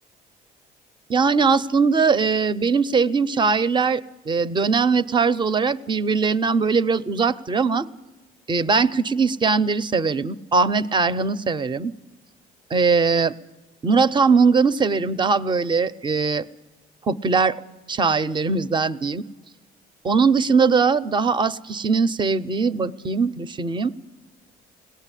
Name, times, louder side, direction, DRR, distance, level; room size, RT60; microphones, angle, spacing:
voice 1, 1.1-7.9 8.5-11.9 12.7-13.3 13.8-16.4 17.1-17.6 17.9-19.2 20.0-23.9, right 4 dB, 25° right, 14 dB, 0.7 m, -20 dB
22.5 x 18.0 x 9.9 m, 1.2 s
cardioid pair, 110°, 17 cm